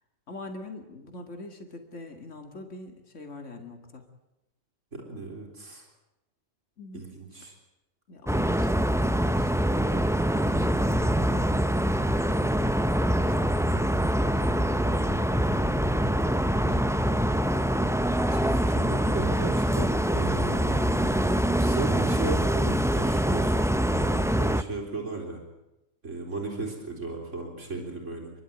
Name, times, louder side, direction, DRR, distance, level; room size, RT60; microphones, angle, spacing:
voice 1, 0.3-4.0 6.8-7.1 8.1-10.1 10.3-11.6 11.9-12.7 13.3-16.0 16.6-17.9, left 2 dB, 80° left, 4 dB, 2.5 m, -44 dB
voice 2, 4.9-5.9 6.9-7.5 18.3-21.3 21.6-25.4 26.0-28.3, right 3 dB, 90° right, 1 dB, 4.2 m, -36 dB
sound 1, 8.3-24.6, equal, 5° right, 0.4 m, -24 dB
29.0 x 12.0 x 9.2 m, 0.93 s
omnidirectional pair, 1.2 m